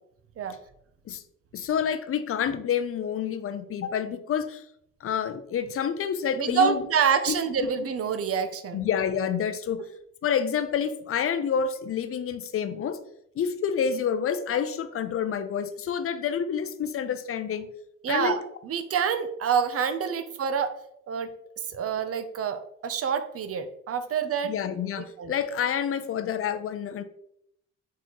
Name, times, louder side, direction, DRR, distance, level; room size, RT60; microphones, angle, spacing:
voice 1, 1.5-4.6 5.0-6.8 7.3-7.4 8.7-9.8 10.2-13.0 13.4-17.7 18.1-18.3 24.4-27.0, left 7 dB, 50° left, 11 dB, 0.5 m, -28 dB
voice 2, 6.4-8.8 18.0-20.7 21.1-21.3 21.7-24.5 25.2-25.3, right 7 dB, 50° right, 10 dB, 0.6 m, -27 dB
4.2 x 4.0 x 3.0 m, 0.75 s
cardioid pair, 90°, 30 cm